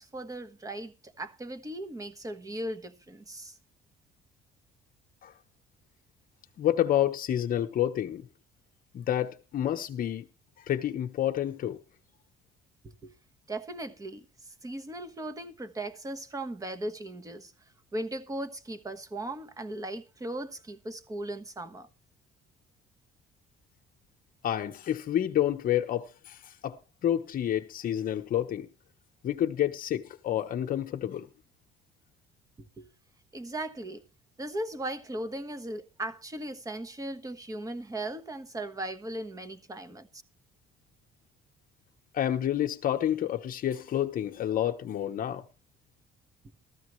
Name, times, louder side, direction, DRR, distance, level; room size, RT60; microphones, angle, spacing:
voice 1, 0.0-3.6 12.8-13.1 13.5-17.5 17.9-21.9 32.6-32.9 33.3-34.0 34.4-40.1, right 1 dB, 20° right, 1.3 m, -38 dB
voice 2, 6.6-8.2 8.9-10.2 10.7-11.8 24.4-26.8 27.0-28.7 29.2-31.3 42.1-45.4, left 11 dB, 55° left, 1.0 m, -29 dB
14.5 x 13.5 x 3.2 m
cardioid pair, 110°, 17 cm